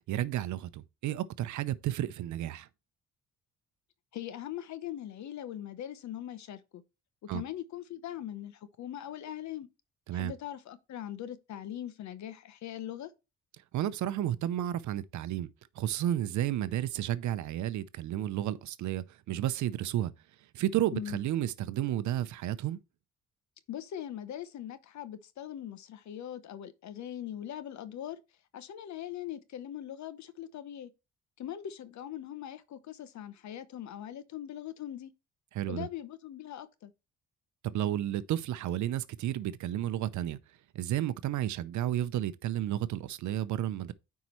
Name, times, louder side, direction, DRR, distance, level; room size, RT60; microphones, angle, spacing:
voice 1, 0.1-2.7 7.3-7.4 10.1-10.3 13.7-15.5 15.8-20.1 20.5-22.8 35.5-35.9 37.6-40.4 40.7-43.9, right 12 dB, 70° right, 0.6 m, -32 dB
voice 2, 4.1-6.8 7.2-9.7 10.1-13.1 20.9-21.2 23.7-28.2 28.5-30.9 31.4-35.1 35.7-36.9, left 11 dB, 65° left, 0.9 m, -41 dB
9.4 x 4.7 x 3.1 m
cardioid pair, 90°, 30 cm